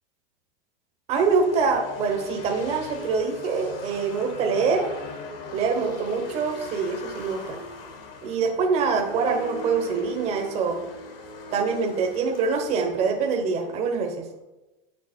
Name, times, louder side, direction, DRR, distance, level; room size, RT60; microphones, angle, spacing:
sound 1, 1.1-14.2, left 1 dB, 70° left, 1.9 m, -40 dB
voice 1, 1.1-4.9 5.5-7.6 8.2-10.9 11.5-14.2, right 5 dB, 20° right, 4 dB, 0.9 m, -25 dB
8.4 x 6.5 x 4.4 m, 1.0 s
supercardioid pair, 175°, 29 cm